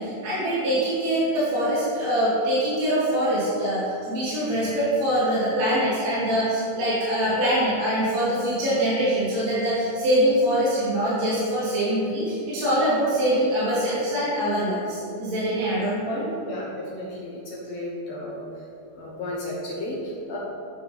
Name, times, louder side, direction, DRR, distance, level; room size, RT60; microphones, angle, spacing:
voice 1, 0.0-16.2, equal, 50° right, -11 dB, 3.0 m, -24 dB
voice 2, 16.4-18.4 18.9-20.4, left 1 dB, 80° left, -5 dB, 1.4 m, -33 dB
8.6 x 6.9 x 4.0 m, 2.6 s
omnidirectional pair, 4.8 m